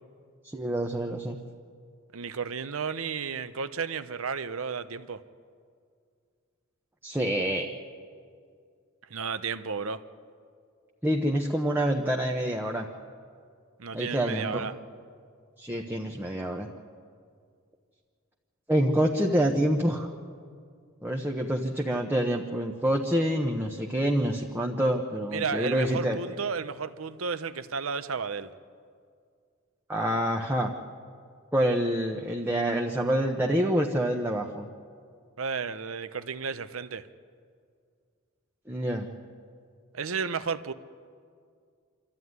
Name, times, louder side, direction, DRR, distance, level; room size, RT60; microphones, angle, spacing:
voice 1, 0.4-1.4 7.0-7.7 11.0-12.9 13.9-14.7 15.6-16.7 18.7-20.1 21.0-26.2 29.9-30.7 31.5-34.7 38.7-39.1, equal, 10° right, 0 dB, 0.9 m, -27 dB
voice 2, 2.1-5.2 9.1-10.0 13.8-14.7 25.3-28.5 35.4-37.1 39.9-40.7, right 5 dB, 75° right, 12 dB, 0.8 m, -33 dB
26.0 x 13.0 x 9.5 m, 2.2 s
head